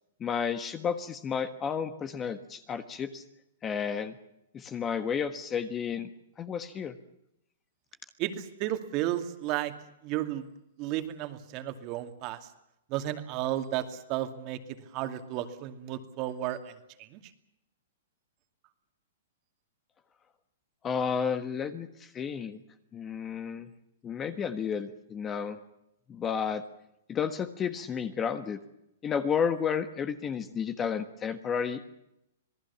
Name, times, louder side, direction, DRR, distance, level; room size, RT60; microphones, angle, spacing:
voice 1, 0.2-3.2 3.6-4.2 4.5-6.1 6.4-6.9 20.8-22.6 22.9-23.7 24.0-25.6 26.1-26.6 27.1-28.6 29.0-31.9, left 7 dB, 20° left, 11 dB, 1.4 m, -32 dB
voice 2, 8.2-9.7 10.0-10.5 10.8-12.4 12.9-14.6 14.9-16.7 17.0-17.2, right 13 dB, 35° right, 8 dB, 2.5 m, -33 dB
27.0 x 19.0 x 7.1 m, 0.82 s
hypercardioid pair, 150°, 0 cm